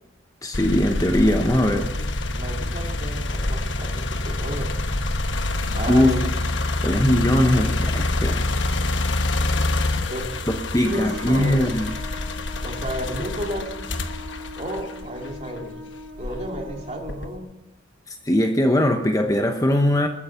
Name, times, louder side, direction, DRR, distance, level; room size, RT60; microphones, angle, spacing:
voice 1, 0.4-1.9 5.9-6.1 6.8-8.4 10.7-11.9 18.1-20.1, left 1 dB, 15° left, 5 dB, 0.9 m, -20 dB
sound 1, 0.5-15.6 16.2-17.4, left 2 dB, 75° left, 1.1 m, -26 dB
voice 2, 2.3-4.7 5.7-6.3 10.1-10.3 10.8-11.7 12.6-13.7 14.6-15.8 16.2-17.5, equal, 35° right, 1 dB, 2.5 m, -32 dB
Trumpet, 10.9-17.4, left 1 dB, 85° right, 2.3 m, -40 dB
21.5 x 9.6 x 5.8 m, 0.98 s
head